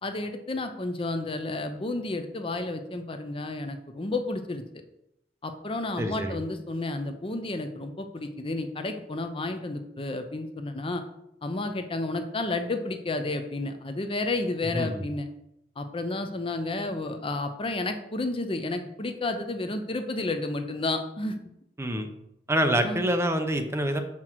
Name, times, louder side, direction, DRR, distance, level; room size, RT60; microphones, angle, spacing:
voice 1, 0.0-4.6 5.4-11.0 11.4-15.3 15.8-21.3 22.8-23.0, left 2 dB, 30° left, 7 dB, 0.6 m, -31 dB
voice 2, 6.0-6.4 14.7-15.0 21.8-22.1 22.5-24.0, right 1 dB, 15° right, 6 dB, 0.7 m, -26 dB
7.5 x 5.9 x 4.6 m, 0.81 s
head